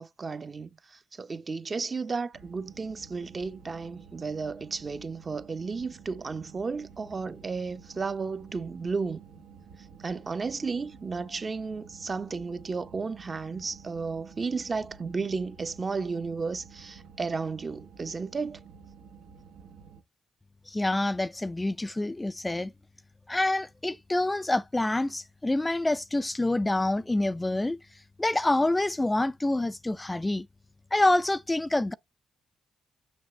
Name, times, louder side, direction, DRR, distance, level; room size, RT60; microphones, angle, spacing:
voice 1, 0.0-9.2 10.0-18.6, right 4 dB, 40° right, 0.9 m, -33 dB
sound 1, 2.3-20.0, right 6 dB, 80° right, 1.2 m, -51 dB
voice 2, 20.7-22.7 23.3-27.8 28.2-30.5 30.9-31.9, left 2 dB, 20° left, 0.4 m, -27 dB
6.6 x 6.3 x 3.2 m
supercardioid pair, 50°, 0 cm